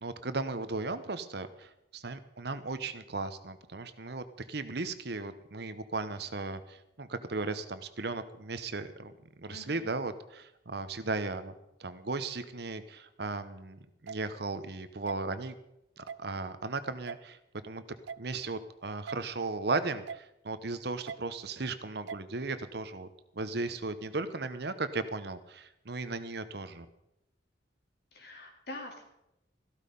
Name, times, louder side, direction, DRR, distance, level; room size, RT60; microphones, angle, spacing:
voice 1, 0.0-9.1 9.4-11.5 11.8-15.5 16.0-17.4 17.6-17.8 18.2-23.1 23.4-26.9, right 3 dB, 60° right, 11 dB, 1.0 m, -36 dB
voice 2, 9.5-10.0 28.1-29.0, left 2 dB, 60° left, 2 dB, 3.2 m, -45 dB
sound 1, 14.1-14.2 15.1-15.2 16.1-16.2 17.1-17.2 18.1-18.2 19.1-19.2 20.1-20.2 21.1-21.2 22.1-22.2, right 6 dB, 75° right, 0.4 m, -40 dB
14.5 x 13.0 x 5.4 m, 0.86 s
head